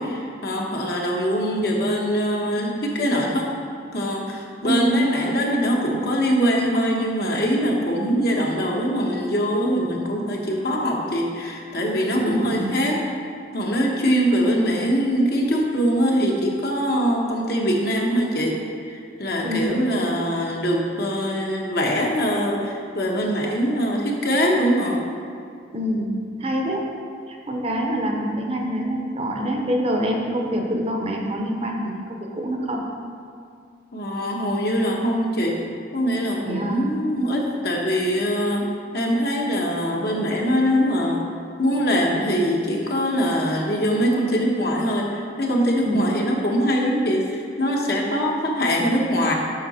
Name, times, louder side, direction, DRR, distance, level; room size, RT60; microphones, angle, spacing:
voice 1, 0.0-3.5 3.9-13.1 13.5-18.6 18.9-25.0 33.9-35.6 35.9-38.7 38.9-41.2 41.6-49.3, equal, 60° left, -1 dB, 1.1 m, -22 dB
voice 2, 4.6-4.9 12.2-12.8 19.4-19.9 25.7-26.1 26.4-26.8 27.3-32.8 36.4-36.9 45.8-46.1, equal, 35° right, 1 dB, 0.7 m, -25 dB
7.8 x 5.7 x 4.2 m, 2.3 s
head